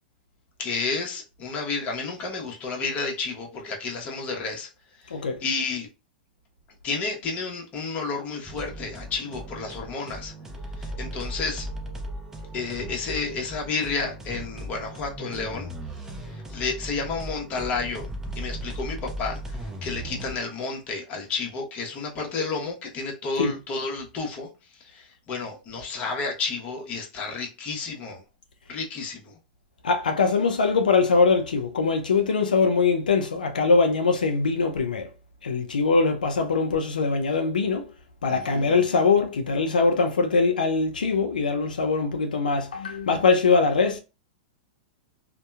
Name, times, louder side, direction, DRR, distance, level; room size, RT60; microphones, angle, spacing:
voice 1, 0.6-4.7 5.0-5.9 6.8-10.3 10.8-11.7 12.5-15.7 16.2-28.2 28.7-29.4 38.3-38.7, left 4 dB, 35° left, 0.9 m, -31 dB
sound 1, 8.4-20.4, right 1 dB, 10° right, 0.6 m, -37 dB
voice 2, 29.8-35.1 35.4-37.9 38.2-44.0, left 4 dB, 90° left, 0.4 m, -22 dB
2.7 x 2.2 x 2.2 m
hypercardioid pair, 115°, 4 cm